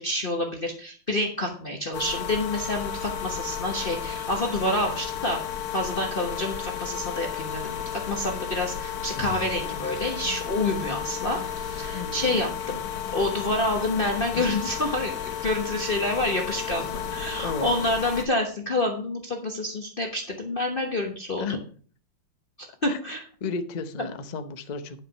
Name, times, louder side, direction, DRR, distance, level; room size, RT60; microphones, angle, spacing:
voice 1, 0.0-5.4 5.7-12.8 13.1-21.4 22.6-23.2, left 1 dB, 35° left, 1 dB, 1.1 m, -28 dB
sound 1, 1.9-18.2, left 8 dB, 55° left, 1.6 m, -33 dB
voice 2, 11.9-12.4 14.3-14.7 17.3-17.7 21.4-21.6 22.9-23.0 23.4-25.0, left 4 dB, 70° left, 9 dB, 0.4 m, -33 dB
10.0 x 5.8 x 5.6 m, 0.43 s
omnidirectional pair, 2.2 m